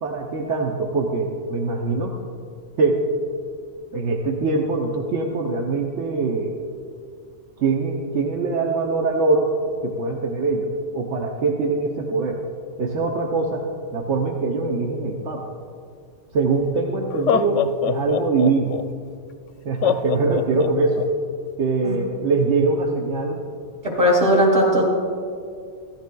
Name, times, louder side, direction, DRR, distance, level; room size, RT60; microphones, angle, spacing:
voice 1, 0.0-2.2 2.8-3.0 3.9-6.6 7.6-9.5 9.8-12.4 12.8-13.6 13.9-15.5 16.3-18.8 19.6-21.1 21.6-23.4, right 3 dB, 80° right, 1 dB, 1.1 m, -23 dB
Laughter, 16.4-16.5 17.1-18.8 19.8-21.0, left 8 dB, 90° left, 0.9 m, -23 dB
voice 2, 24.0-24.8, equal, 30° right, -5 dB, 2.0 m, -17 dB
16.0 x 13.5 x 2.3 m, 2.3 s
omnidirectional pair, 1.2 m